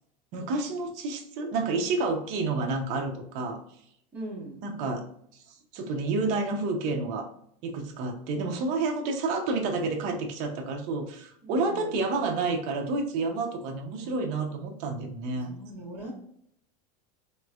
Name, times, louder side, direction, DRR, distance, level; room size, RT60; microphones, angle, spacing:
voice 1, 0.3-3.6 4.6-5.1 5.7-7.3 7.6-15.5, right 3 dB, 35° right, 2 dB, 0.6 m, -29 dB
voice 2, 4.1-4.7 11.4-12.0 14.0-14.2 15.4-16.1, right 1 dB, 10° right, -8 dB, 1.3 m, -41 dB
3.1 x 3.0 x 2.3 m, 0.69 s
supercardioid pair, 175°, 21 cm